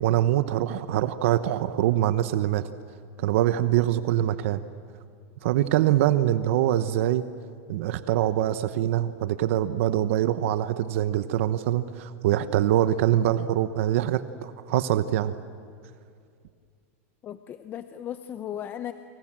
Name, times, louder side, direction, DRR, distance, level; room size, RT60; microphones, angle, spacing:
voice 1, 0.0-2.7 3.2-4.6 5.4-7.2 7.7-15.3, right 12 dB, 65° right, 12 dB, 0.9 m, -24 dB
voice 2, 17.2-18.9, left 10 dB, 25° left, 10 dB, 0.8 m, -36 dB
29.0 x 26.0 x 7.5 m, 2.3 s
supercardioid pair, 155°, 8 cm